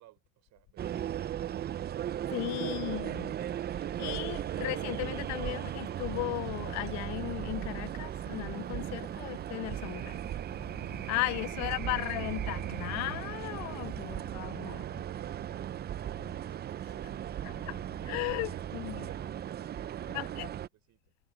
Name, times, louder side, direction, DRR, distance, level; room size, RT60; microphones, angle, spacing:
voice 1, 0.0-1.5 13.6-17.5 18.0-21.1, right 16 dB, 45° right, 5.2 m, -58 dB
sound 1, 0.8-20.7, right 11 dB, 25° right, 0.8 m, -37 dB
voice 2, 2.3-3.3 4.0-14.8 17.4-19.1 20.1-20.5, left 24 dB, 45° left, 0.7 m, -36 dB
hypercardioid pair, 95°, 38 cm